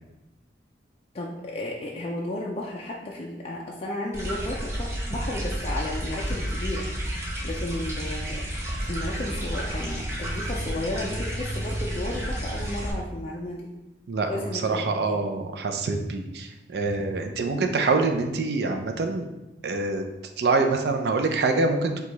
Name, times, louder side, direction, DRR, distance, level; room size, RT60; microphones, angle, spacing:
voice 1, 1.1-8.4 8.8-13.7 14.3-15.3, left 1 dB, 35° left, -2 dB, 0.4 m, -33 dB
sound 1, 4.1-12.9, equal, 15° right, 0.7 m, -31 dB
voice 2, 14.1-19.3 19.6-20.0 20.4-22.1, right 3 dB, 65° right, 4 dB, 0.4 m, -25 dB
4.7 x 2.3 x 3.9 m, 0.98 s
head